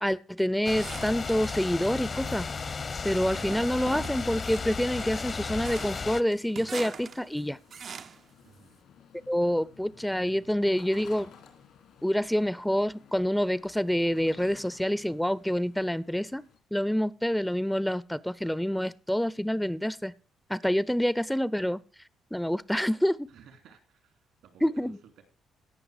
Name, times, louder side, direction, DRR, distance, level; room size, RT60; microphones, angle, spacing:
voice 1, 0.0-2.5 3.0-7.6 9.3-11.3 12.0-16.4 16.7-20.1 20.5-21.8 22.3-23.3 24.6-25.0, equal, 5° left, 19 dB, 0.5 m, -27 dB
sound 1, 0.6-6.2, left 5 dB, 45° left, 0.8 m, -34 dB
sound 2, 0.8-1.7 2.1-2.7 3.3-8.3, right 6 dB, 55° right, 0.5 m, -44 dB
sound 3, 4.1-16.6, left 7 dB, 80° left, 2.9 m, -56 dB
voice 2, 8.4-8.8 23.3-24.1 24.4-25.2, right 6 dB, 85° right, 6 dB, 2.7 m, -54 dB
17.0 x 5.9 x 4.8 m, 0.38 s
supercardioid pair, 60°, 0 cm